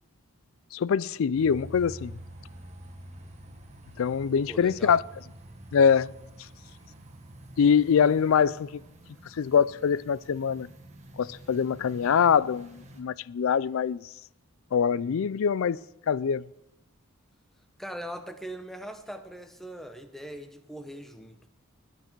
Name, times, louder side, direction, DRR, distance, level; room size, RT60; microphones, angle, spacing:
voice 1, 0.7-2.1 4.0-5.0 5.7-6.1 7.6-8.8 9.3-10.7 11.2-14.0 14.7-15.8 16.1-16.5, left 7 dB, 65° left, 0.3 m, -24 dB
sound 1, 1.3-13.0, right 1 dB, 30° right, 1.5 m, -48 dB
voice 2, 4.5-5.0 17.8-21.5, equal, ahead, 0.8 m, -41 dB
20.5 x 8.1 x 4.6 m
head